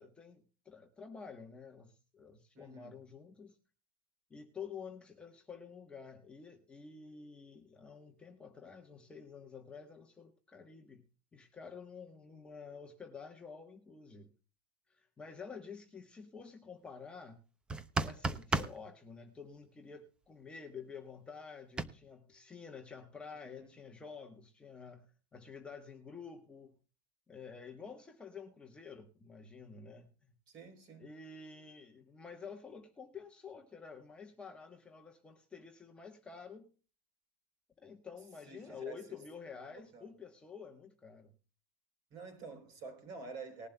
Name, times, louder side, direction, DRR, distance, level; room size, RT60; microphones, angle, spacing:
voice 1, 0.0-3.6 4.3-11.0 11.3-14.3 14.9-17.4 18.0-26.8 27.3-30.3 31.0-36.7 37.8-41.3, left 5 dB, 10° left, 1.1 m, -50 dB
voice 2, 2.5-2.9 23.5-23.7 30.5-31.1 38.5-39.2 39.7-40.1 42.1-43.7, right 4 dB, 40° right, 3.7 m, -49 dB
sound 1, 17.7-18.8 21.8-21.9, right 3 dB, 10° right, 0.7 m, -32 dB
19.5 x 11.5 x 2.2 m
supercardioid pair, 165°, 11 cm